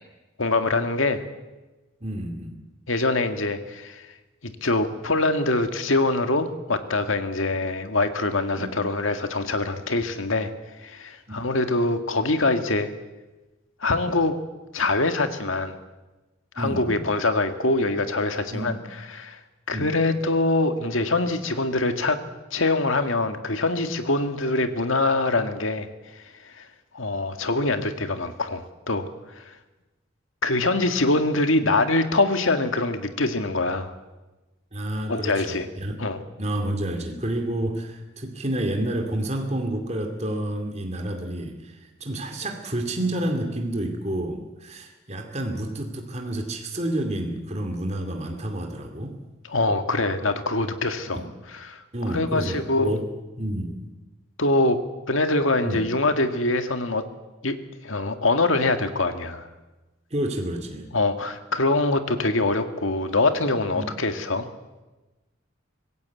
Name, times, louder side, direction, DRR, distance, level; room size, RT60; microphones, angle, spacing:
voice 1, 0.4-1.2 2.9-4.1 4.4-10.5 10.8-12.9 13.8-14.4 14.7-15.7 16.6-19.4 19.7-22.2 22.5-25.9 26.4-26.7 26.9-29.1 29.4-29.5 30.4-33.9 35.1-35.7 36.0-36.2 49.5-51.8 52.1-53.0 54.4-54.8 55.1-57.0 57.4-57.6 57.8-59.5 60.9-64.5, left 2 dB, 75° left, 8 dB, 1.9 m, -24 dB
voice 2, 2.0-2.6 8.5-8.7 16.6-17.0 18.5-18.8 19.7-19.9 34.7-36.0 36.4-49.2 51.1-51.2 51.9-53.0 53.4-53.8 55.6-55.8 60.1-60.9 63.8-63.9, right 1 dB, 35° right, 3 dB, 2.5 m, -29 dB
25.0 x 16.5 x 8.4 m, 1.1 s
head